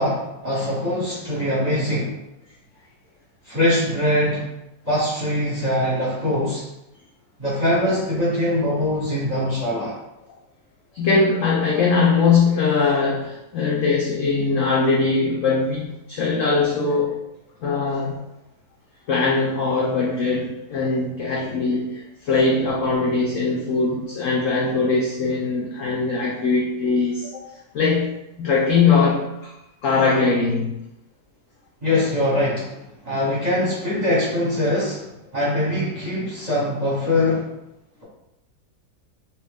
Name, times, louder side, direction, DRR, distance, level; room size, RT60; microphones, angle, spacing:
voice 1, 0.0-2.2 3.4-4.4 4.8-6.6 7.4-10.0 31.8-32.8 33.0-35.1 35.3-37.5, left 1 dB, 30° right, -7 dB, 0.8 m, -22 dB
voice 2, 10.9-17.2 17.6-18.2 19.1-28.1 28.4-30.8, left 4 dB, 75° left, -3 dB, 0.7 m, -21 dB
2.9 x 2.7 x 3.4 m, 0.87 s
omnidirectional pair, 1.9 m